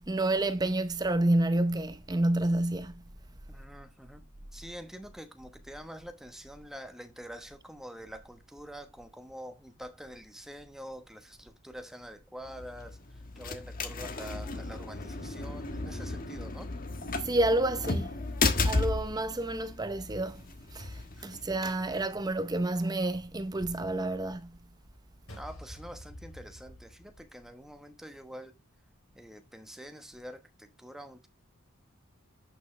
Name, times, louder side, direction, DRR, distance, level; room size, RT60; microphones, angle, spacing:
voice 1, 0.0-3.0 17.2-18.1 18.6-20.4 20.7-24.6, right 1 dB, 20° right, 0.7 m, -29 dB
voice 2, 3.5-4.2 4.5-16.7 21.2-21.3 25.3-28.5 29.1-31.3, equal, ahead, 1.0 m, -46 dB
sound 1, 12.4-22.1, left 3 dB, 40° left, 1.3 m, -34 dB
sound 2, 25.3-27.6, left 1 dB, 80° left, 5.9 m, -48 dB
11.0 x 6.3 x 3.2 m
head